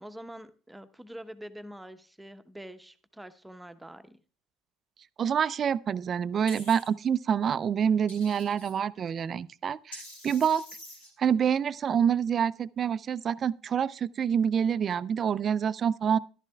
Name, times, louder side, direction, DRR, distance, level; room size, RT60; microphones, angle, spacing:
voice 1, 0.0-4.2, right 1 dB, 5° right, 0.9 m, -45 dB
voice 2, 5.2-10.7 11.2-16.2, right 8 dB, 40° right, 0.4 m, -27 dB
sound 1, 6.5-6.9 8.1-8.7 9.9-11.1, left 1 dB, 85° left, 3.2 m, -46 dB
13.5 x 11.5 x 2.3 m
hypercardioid pair, 65°, 0 cm